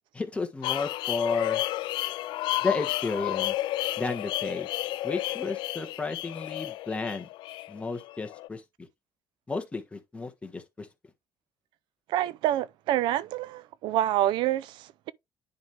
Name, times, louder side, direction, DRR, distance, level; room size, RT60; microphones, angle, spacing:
voice 1, 0.1-1.6 2.6-3.5 4.0-4.7 5.0-7.3 7.7-8.6 9.5-10.9, left 4 dB, 15° left, 1.3 m, -32 dB
sound 1, 0.6-8.5, left 16 dB, 80° left, 0.3 m, -32 dB
voice 2, 12.1-15.1, right 13 dB, 85° right, 0.5 m, -27 dB
10.5 x 3.5 x 3.2 m
cardioid pair, 125°, 8 cm